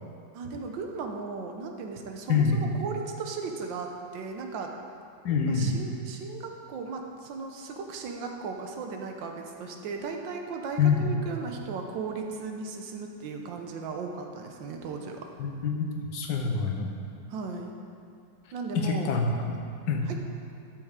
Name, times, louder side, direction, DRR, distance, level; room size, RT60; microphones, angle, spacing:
voice 1, 0.3-4.7 5.5-15.2 17.3-17.7 18.5-19.1 20.1-20.2, right 4 dB, 85° right, 3 dB, 1.5 m, -36 dB
voice 2, 2.3-2.6 5.2-5.7 10.8-11.1 15.4-16.9 18.7-19.6 19.9-20.1, left 5 dB, 70° left, 1 dB, 1.5 m, -26 dB
12.0 x 6.3 x 3.6 m, 2.4 s
omnidirectional pair, 2.0 m